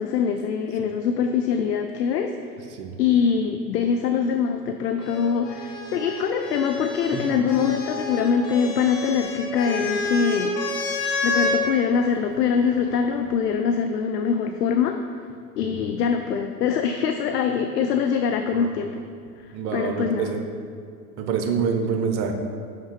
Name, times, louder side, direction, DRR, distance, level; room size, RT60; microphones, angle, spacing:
voice 1, 0.0-2.3 3.0-10.5 11.2-15.0 15.6-19.0 19.4-20.4, left 6 dB, 75° left, 6 dB, 0.6 m, -23 dB
sound 1, 5.0-11.6 12.7-13.3, left 3 dB, 40° left, 1.4 m, -29 dB
voice 2, 19.5-20.4 21.2-22.3, right 6 dB, 45° right, 5 dB, 0.9 m, -26 dB
5.8 x 5.8 x 4.7 m, 2.3 s
figure-of-eight pair, 85°, 49 cm